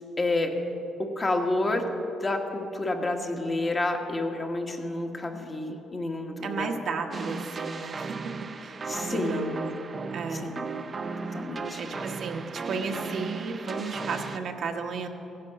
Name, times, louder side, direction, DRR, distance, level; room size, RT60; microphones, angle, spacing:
voice 1, 0.2-0.5 1.0-1.9 2.2-6.8 8.9-9.7 10.3-10.6 11.2-12.0, left 2 dB, 25° left, 2 dB, 1.5 m, -29 dB
voice 2, 6.4-8.3 8.6-9.6 10.1-10.6 11.8-15.1, right 4 dB, 60° right, 3 dB, 1.3 m, -34 dB
sound 1, 7.1-14.4, right 4 dB, 35° right, 0.6 m, -36 dB
15.5 x 10.5 x 6.4 m, 2.9 s
cardioid pair, 105°, 0 cm